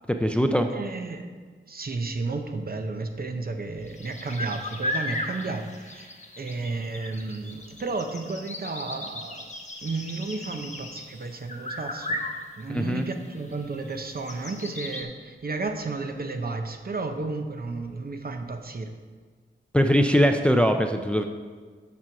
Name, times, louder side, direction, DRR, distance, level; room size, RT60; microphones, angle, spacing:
voice 1, 0.1-0.7 12.7-13.1 19.7-21.2, equal, 5° left, 6 dB, 0.4 m, -21 dB
voice 2, 0.7-1.3 1.7-6.1 6.4-9.5 9.8-12.2 12.6-18.9, right 3 dB, 45° right, 6 dB, 0.8 m, -32 dB
sound 1, 3.9-15.0, left 1 dB, 35° left, 1.0 m, -36 dB
7.4 x 6.1 x 5.8 m, 1.5 s
wide cardioid pair, 125°, 21 cm